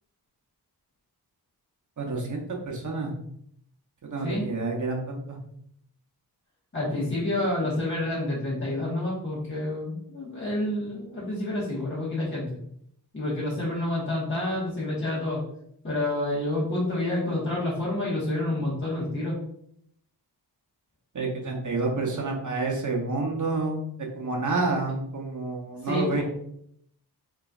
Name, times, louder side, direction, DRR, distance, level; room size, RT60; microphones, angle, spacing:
voice 1, 2.0-3.1 4.0-5.4 21.1-23.8 24.2-26.2, right 3 dB, 50° right, 0 dB, 0.9 m, -29 dB
voice 2, 6.7-12.5 13.1-15.4 15.8-19.4 25.8-26.2, left 1 dB, 30° left, -8 dB, 1.2 m, -28 dB
3.9 x 3.1 x 2.4 m, 0.70 s
wide cardioid pair, 100°, 40 cm